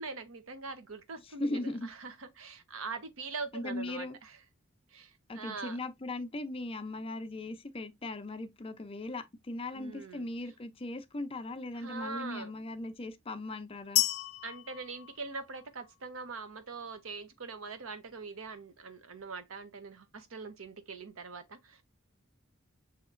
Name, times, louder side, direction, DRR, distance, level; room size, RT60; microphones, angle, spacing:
voice 1, 0.0-4.4 4.9-5.8 9.7-10.3 11.7-12.5 14.4-21.8, right 4 dB, 85° right, 0.8 m, -43 dB
voice 2, 1.2-1.9 3.5-4.2 5.3-14.0, left 2 dB, 25° left, 0.5 m, -38 dB
sound 1, 14.0-15.9, left 17 dB, 90° left, 0.3 m, -32 dB
6.6 x 2.8 x 2.5 m
head